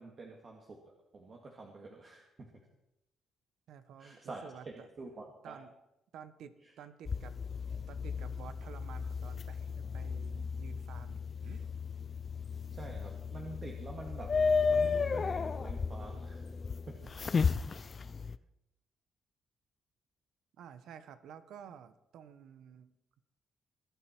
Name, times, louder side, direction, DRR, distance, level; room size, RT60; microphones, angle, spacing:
voice 1, 0.0-2.6 4.0-5.6 6.6-6.7 12.7-14.3 14.7-16.5 16.9-17.0 17.6-17.8, right 3 dB, 45° right, 0 dB, 1.9 m, -47 dB
voice 2, 3.7-4.9 5.4-5.7 6.1-7.3 7.7-11.7 17.0-17.5 18.2-18.3 20.6-22.9, right 8 dB, 80° right, 11 dB, 1.0 m, -52 dB
sound 1, 7.1-18.4, left 5 dB, 40° left, 0.5 m, -34 dB
21.5 x 9.2 x 4.5 m, 0.90 s
cardioid pair, 90°, 0 cm